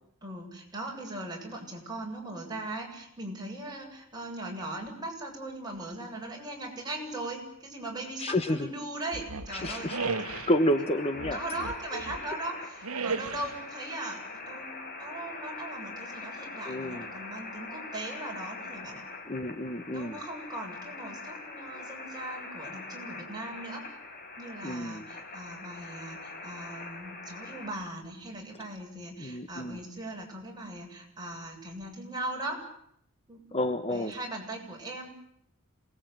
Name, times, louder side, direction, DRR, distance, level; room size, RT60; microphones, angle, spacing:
voice 1, 0.2-9.9 11.3-19.0 19.9-23.9 24.4-32.7 33.3-33.4 33.9-35.2, right 1 dB, 20° right, -1 dB, 7.5 m, -39 dB
voice 2, 8.2-8.7 9.6-10.0 10.5-11.4 11.9-12.0 16.7-17.1 19.3-20.2 24.6-25.1 29.2-29.8 33.5-34.1, left 1 dB, 30° left, 8 dB, 1.2 m, -29 dB
sound 1, 9.1-10.6 11.1-12.3 12.8-13.6, right 4 dB, 75° right, 1.4 m, -35 dB
sound 2, 9.5-27.7, left 3 dB, 45° left, 4.8 m, -43 dB
27.5 x 20.0 x 9.3 m, 0.72 s
head